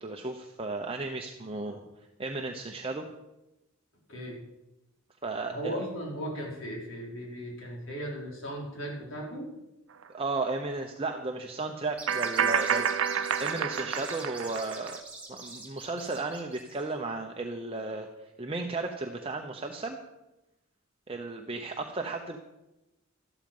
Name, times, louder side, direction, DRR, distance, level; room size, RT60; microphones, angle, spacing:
voice 1, 0.0-1.8 2.2-3.0 5.2-5.8 10.1-15.0 15.3-18.1 18.4-20.0 21.1-22.4, right 3 dB, 25° right, 3 dB, 0.8 m, -34 dB
voice 2, 5.5-9.5, equal, 70° left, -2 dB, 4.7 m, -37 dB
sound 1, 10.0-10.1 12.1-14.9, right 7 dB, 70° right, 0.7 m, -29 dB
sound 2, 11.9-16.9, right 3 dB, 5° right, 3.3 m, -44 dB
13.0 x 12.5 x 5.5 m, 0.97 s
head